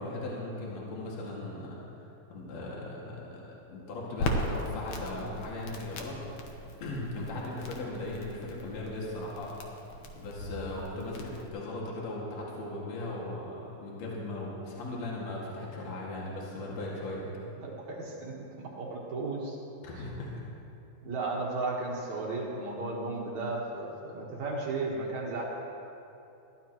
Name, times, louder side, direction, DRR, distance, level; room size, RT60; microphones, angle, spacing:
voice 1, 0.0-3.4 3.7-6.2 6.8-9.5 10.1-17.3 19.8-20.3, left 2 dB, 50° left, -5 dB, 3.0 m, -38 dB
Crackle, 4.2-11.5, left 1 dB, 65° left, 1.8 m, -38 dB
voice 2, 17.6-19.6 19.9-20.0 21.0-25.4, right 3 dB, 55° right, -3 dB, 2.5 m, -35 dB
21.0 x 15.5 x 3.1 m, 2.8 s
omnidirectional pair, 4.4 m